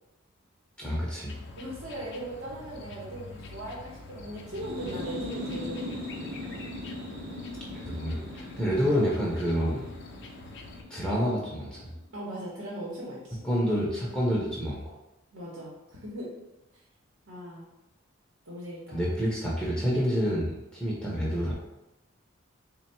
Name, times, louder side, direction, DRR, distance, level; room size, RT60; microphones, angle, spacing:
voice 1, 0.8-1.4 7.7-9.9 10.9-11.8 13.4-14.8 18.9-21.5, equal, 5° left, -5 dB, 0.5 m, -28 dB
sound 1, 1.3-10.8, left 3 dB, 60° left, 0.4 m, -46 dB
voice 2, 1.6-6.0 8.7-8.9 12.1-13.5 15.3-16.3 16.7-16.8 17.3-17.7 18.5-19.0, right 1 dB, 85° right, -5 dB, 0.9 m, -39 dB
sound 2, 4.4-12.0, left 1 dB, 55° right, 0.8 m, -40 dB
3.4 x 2.2 x 4.2 m, 0.97 s
head